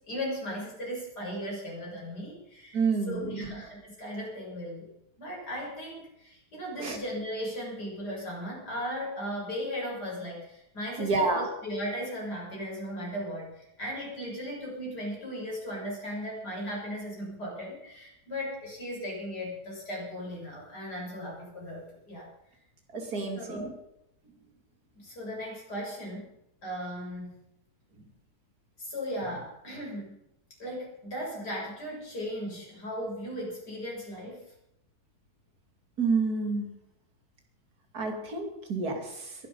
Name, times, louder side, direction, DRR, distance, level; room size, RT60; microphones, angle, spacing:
voice 1, 0.0-4.9 5.2-22.3 23.3-23.7 24.9-26.3 26.6-27.4 28.8-30.2 30.6-34.5, equal, 90° left, -3 dB, 7.5 m, -37 dB
voice 2, 2.7-3.5 6.8-7.0 11.0-11.4 22.9-23.7 36.0-36.7 37.9-39.0, right 4 dB, 70° right, 4 dB, 3.3 m, -28 dB
22.0 x 11.0 x 5.6 m, 0.83 s
omnidirectional pair, 1.7 m